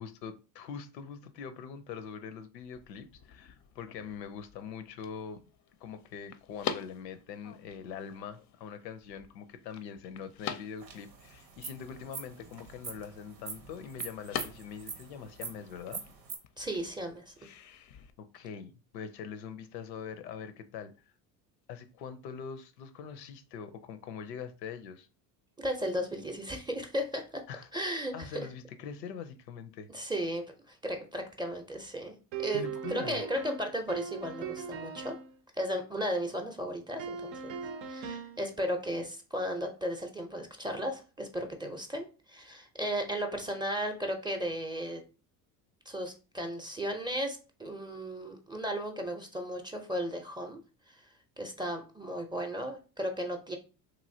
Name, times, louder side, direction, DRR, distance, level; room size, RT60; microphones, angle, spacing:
voice 1, 0.0-5.4 5.8-16.0 18.2-20.9 21.7-25.1 27.5-29.9 32.5-33.2, left 7 dB, 90° left, 0.5 m, -43 dB
sound 1, 2.6-18.1, left 8 dB, 40° left, 0.4 m, -46 dB
sound 2, 10.8-16.4, right 5 dB, 85° right, 0.8 m, -44 dB
voice 2, 16.6-17.3 25.6-27.4 27.7-28.4 29.9-32.1 32.4-35.2 35.5-37.6 37.9-45.0 45.9-50.6 50.9-51.0 51.4-53.6, equal, 10° right, 0.5 m, -35 dB
sound 3, 32.3-35.3 37.0-38.4, right 6 dB, 60° right, 0.6 m, -39 dB
3.0 x 2.6 x 2.6 m
hypercardioid pair, 75°, 48 cm